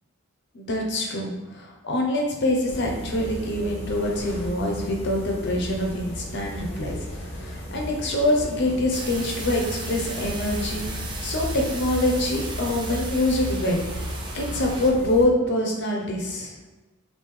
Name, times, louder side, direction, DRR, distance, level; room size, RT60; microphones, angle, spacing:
voice 1, 0.5-7.0 7.3-16.6, left 1 dB, 55° left, 0 dB, 0.7 m, -25 dB
sound 1, 2.7-15.3, equal, 30° left, 0.8 m, -35 dB
sound 2, 8.9-14.9, right 3 dB, 20° right, 0.4 m, -36 dB
3.6 x 2.7 x 3.1 m, 1.2 s
head